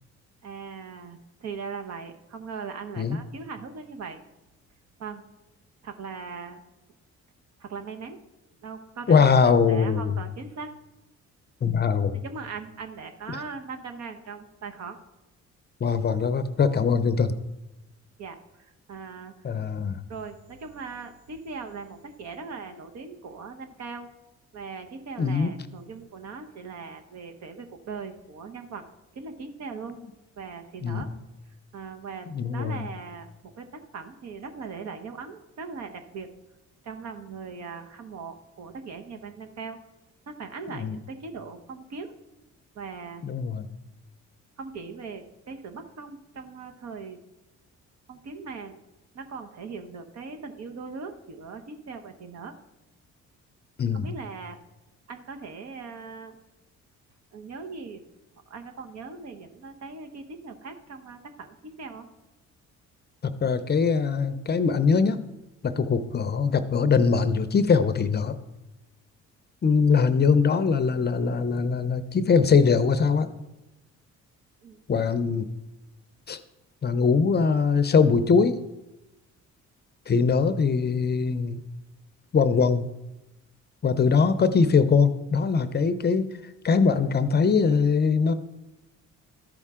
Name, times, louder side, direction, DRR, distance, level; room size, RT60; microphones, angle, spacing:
voice 1, 0.4-4.2 5.0-5.2 5.8-6.6 7.6-8.2 8.6-10.7 12.1-15.0 18.2-19.3 20.1-24.1 24.5-28.9 29.1-30.0 30.4-31.1 31.7-36.3 36.8-39.8 40.3-42.1 42.7-43.2 44.6-47.2 48.1-48.8 49.1-52.6 53.9-54.6 55.1-56.3 57.3-58.0 58.5-62.1 74.6-74.8, right 5 dB, 60° right, 6 dB, 1.0 m, -39 dB
voice 2, 9.1-10.1 11.6-12.2 15.8-17.3 19.4-20.0 25.2-25.5 30.8-31.0 32.3-32.9 40.8-41.0 43.2-43.7 53.8-54.1 63.2-65.2 65.6-68.3 69.6-73.3 74.9-75.5 76.3-76.4 76.8-78.6 80.1-81.6 82.3-82.8 83.8-86.3 86.6-88.3, left 5 dB, 35° left, 11 dB, 0.6 m, -22 dB
13.0 x 5.5 x 3.6 m, 0.98 s
cardioid pair, 90°, 30 cm